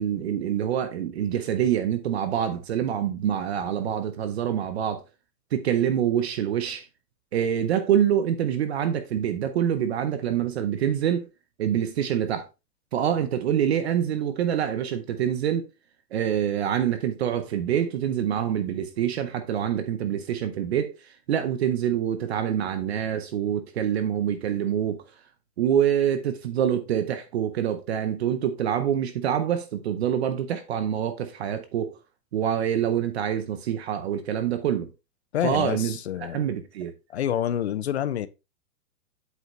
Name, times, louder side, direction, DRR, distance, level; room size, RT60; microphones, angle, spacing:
voice 1, 0.0-5.0 5.5-6.8 7.3-11.3 11.6-12.5 12.9-15.7 16.1-20.9 21.3-25.0 25.6-32.0 32.3-34.9 35.4-36.9, right 9 dB, 40° right, 0.7 m, -26 dB
voice 2, 35.3-36.4 37.1-38.3, left 10 dB, 45° left, 0.4 m, -27 dB
8.0 x 4.9 x 3.1 m
supercardioid pair, 170°, 49 cm